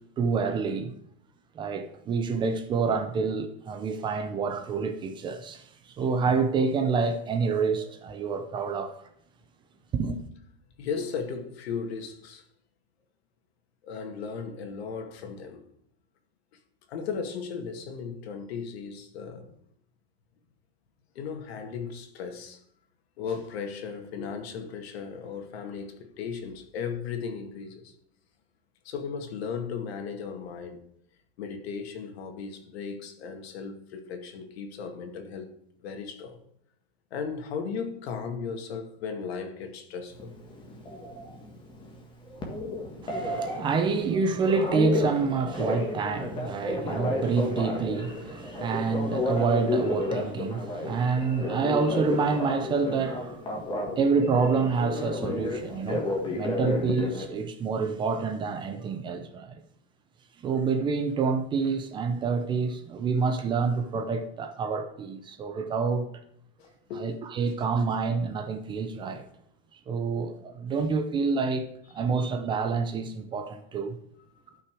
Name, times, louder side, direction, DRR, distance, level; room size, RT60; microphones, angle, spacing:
voice 1, 0.2-0.9 1.6-8.9 9.9-10.2 43.0-53.7 54.0-59.5 60.4-66.1 66.9-69.2 69.9-74.0, right 5 dB, 15° right, 0.5 m, -28 dB
voice 2, 10.8-12.4 13.8-15.6 16.9-19.5 21.2-22.6 23.2-27.9 28.8-30.8 31.4-36.4 37.1-40.3 66.6-67.1 67.8-67.9 74.5-74.6, left 6 dB, 85° left, 2.3 m, -36 dB
Telephone, 40.1-57.3, left 2 dB, 15° left, 1.5 m, -32 dB
13.0 x 5.9 x 4.8 m
supercardioid pair, 175°, 31 cm